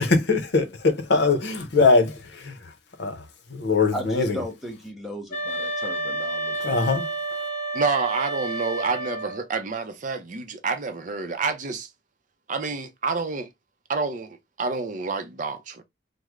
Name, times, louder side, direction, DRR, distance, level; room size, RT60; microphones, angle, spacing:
voice 1, 0.0-2.6 3.0-3.2 3.5-4.4 6.6-7.1, left 3 dB, 65° left, 0.7 m, -21 dB
voice 2, 3.9-6.7, left 1 dB, ahead, 0.8 m, -35 dB
sound 1, 5.3-9.5, right 2 dB, 50° left, 1.1 m, -30 dB
voice 3, 7.7-11.9 12.5-13.5 13.9-15.8, right 4 dB, 45° right, 0.5 m, -28 dB
3.1 x 2.0 x 3.5 m
head